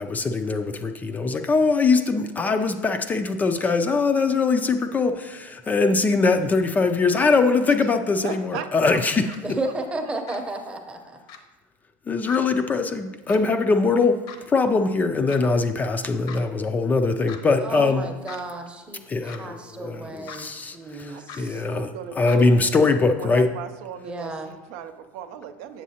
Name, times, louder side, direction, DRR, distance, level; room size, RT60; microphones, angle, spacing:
voice 1, 0.0-9.2 12.1-14.2 14.5-18.1 19.1-21.9 22.2-23.5, left 4 dB, 20° left, 6 dB, 0.3 m, -22 dB
voice 2, 8.2-9.3 9.6-9.7 21.1-25.8, right 8 dB, 70° right, 9 dB, 0.5 m, -37 dB
sound 1, 8.3-8.4 9.3-9.4 10.3-10.4 11.3-11.4 12.3-12.4 13.3-13.4 14.3-14.4 15.3-15.4 16.3-16.4 17.3-17.4 18.3-18.4 19.3-19.4 20.3-20.4 21.3-21.4 22.3-22.4, left 7 dB, 55° left, 0.7 m, -40 dB
voice 3, 9.4-11.2 17.6-21.6 24.0-24.5, right 2 dB, 15° right, 3 dB, 0.7 m, -33 dB
7.3 x 7.1 x 2.8 m, 1.2 s
supercardioid pair, 135°, 9 cm